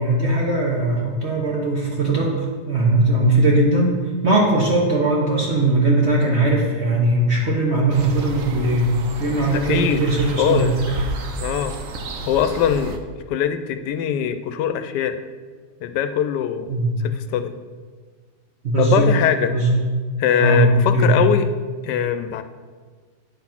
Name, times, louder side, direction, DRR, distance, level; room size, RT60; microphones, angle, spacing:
voice 1, 0.0-3.9 4.2-8.9 9.2-10.7 16.7-16.9 18.6-19.2 19.5-19.9 20.4-20.7 20.9-21.1, right 2 dB, 45° right, -3 dB, 1.2 m, -19 dB
sound 1, 7.9-13.0, right 3 dB, 60° right, 1.0 m, -32 dB
voice 2, 9.5-10.0 10.4-11.0 11.4-11.7 12.3-13.0 13.3-15.1 15.8-16.7 17.0-17.5 18.8-19.5 20.2-21.5 21.8-22.4, left 9 dB, 80° left, 9 dB, 1.2 m, -21 dB
9.0 x 4.0 x 5.8 m, 1.5 s
omnidirectional pair, 1.8 m